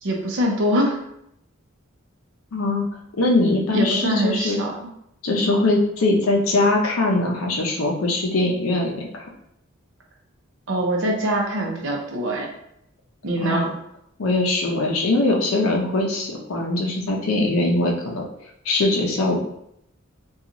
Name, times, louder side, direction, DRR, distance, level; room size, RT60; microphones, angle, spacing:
voice 1, 0.0-1.0 3.7-4.7 5.4-5.6 10.7-12.5 13.2-13.7, right 1 dB, 65° right, 0 dB, 0.6 m, -23 dB
voice 2, 2.5-2.9 3.2-4.6 5.2-9.2 13.4-13.7 14.2-18.2 18.7-19.4, left 2 dB, 80° left, 0 dB, 0.5 m, -21 dB
2.8 x 2.3 x 2.5 m, 0.75 s
head